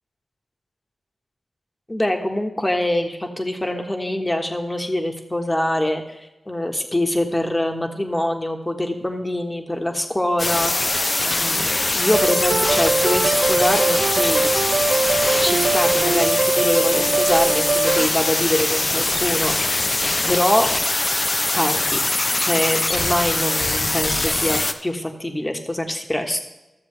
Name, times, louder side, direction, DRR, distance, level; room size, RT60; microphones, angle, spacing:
voice 1, 1.9-10.7 11.2-14.5 15.4-19.5 20.2-20.7 21.5-22.0 22.4-26.4, left 1 dB, 20° left, 3 dB, 1.5 m, -24 dB
sound 1, 10.4-24.7, left 2 dB, 40° left, 0.7 m, -22 dB
sound 2, 12.1-18.1, right 4 dB, 70° right, 0.4 m, -21 dB
13.5 x 7.0 x 3.4 m, 1.0 s
cardioid pair, 45°, 0 cm